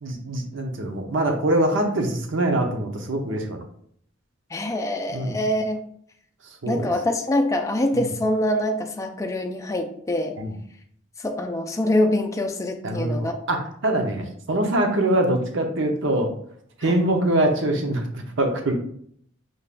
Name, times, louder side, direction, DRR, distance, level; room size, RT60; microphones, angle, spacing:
voice 1, 0.0-3.6 5.1-5.4 6.6-6.9 7.9-8.0 10.4-10.6 12.8-16.3 16.8-18.7, right 1 dB, 70° right, 3 dB, 0.8 m, -23 dB
voice 2, 4.5-5.8 6.7-10.4 11.2-13.3 16.8-17.0, left 1 dB, 15° left, 3 dB, 0.4 m, -24 dB
5.5 x 3.6 x 2.5 m, 0.64 s
head